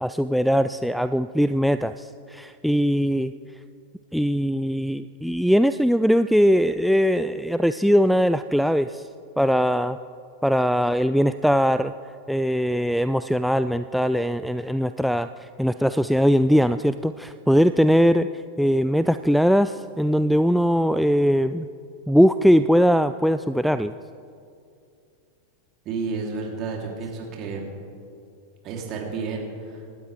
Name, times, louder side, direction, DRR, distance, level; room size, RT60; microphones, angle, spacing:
voice 1, 0.0-3.3 4.1-9.1 9.4-10.0 10.4-11.9 12.3-21.7 22.1-23.9, equal, ahead, 10 dB, 0.3 m, -21 dB
voice 2, 25.8-27.6 28.6-29.8, right 4 dB, 35° right, 0 dB, 3.2 m, -31 dB
28.0 x 12.5 x 3.4 m, 2.4 s
figure-of-eight pair, 90°, 0 cm